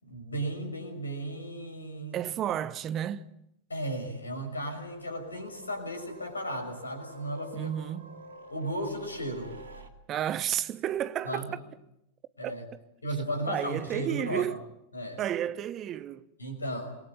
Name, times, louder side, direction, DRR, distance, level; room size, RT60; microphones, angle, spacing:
voice 1, 0.0-2.2 3.7-7.7 8.5-9.5 11.3-11.5 12.4-12.7 13.0-14.6 14.9-15.2 16.4-17.0, right 1 dB, 80° left, 6.0 m, -35 dB
voice 2, 2.1-3.3 7.5-8.1 10.1-11.6 12.4-12.5 13.5-14.6 15.2-16.3, right 11 dB, 30° right, 1.2 m, -32 dB
sound 1, 4.8-9.9, right 1 dB, 70° right, 2.6 m, -48 dB
27.5 x 22.5 x 8.6 m
figure-of-eight pair, 90°, 0 cm